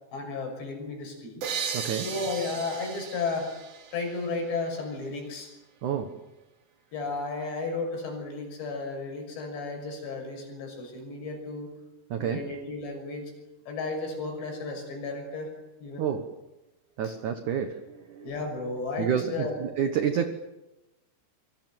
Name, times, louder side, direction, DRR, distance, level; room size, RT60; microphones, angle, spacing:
voice 1, 0.1-1.4 2.0-3.5 3.9-5.5 6.9-11.7 12.2-13.3 13.7-15.5 15.8-16.1 18.2-19.6, left 3 dB, 60° left, 3 dB, 8.3 m, -33 dB
sound 1, 1.4-5.0, right 6 dB, 45° right, 3.3 m, -37 dB
voice 2, 1.7-2.1 5.8-6.2 12.1-12.5 16.0-16.3 17.0-18.3 19.0-20.3, right 8 dB, 80° right, 8 dB, 1.8 m, -29 dB
26.5 x 23.5 x 7.8 m, 1.0 s
omnidirectional pair, 5.7 m